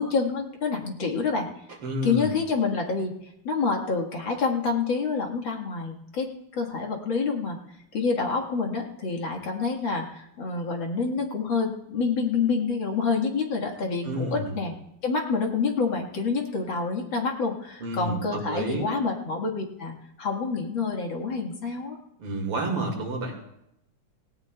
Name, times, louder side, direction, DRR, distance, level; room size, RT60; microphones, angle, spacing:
voice 1, 0.0-1.5 2.0-3.1 3.4-7.6 7.9-14.7 15.0-22.0, left 4 dB, 60° left, 1 dB, 2.5 m, -27 dB
voice 2, 1.8-2.3 14.0-14.6 17.8-18.8 22.2-23.6, right 1 dB, 90° right, 1 dB, 3.1 m, -30 dB
18.0 x 18.0 x 2.3 m, 0.79 s
omnidirectional pair, 2.4 m